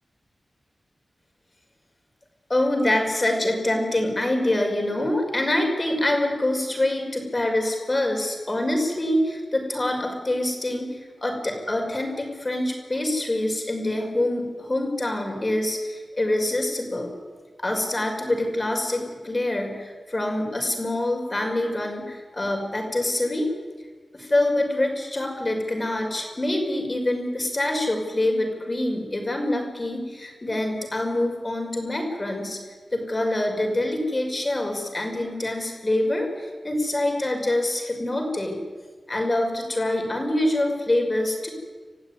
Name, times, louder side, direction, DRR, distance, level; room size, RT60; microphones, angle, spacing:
voice 1, 2.5-17.1 17.6-23.5 24.1-32.6 32.9-38.6 39.1-41.5, left 1 dB, 30° left, 2 dB, 5.9 m, -25 dB
29.0 x 15.0 x 9.7 m, 1.4 s
wide cardioid pair, 75°, 0 cm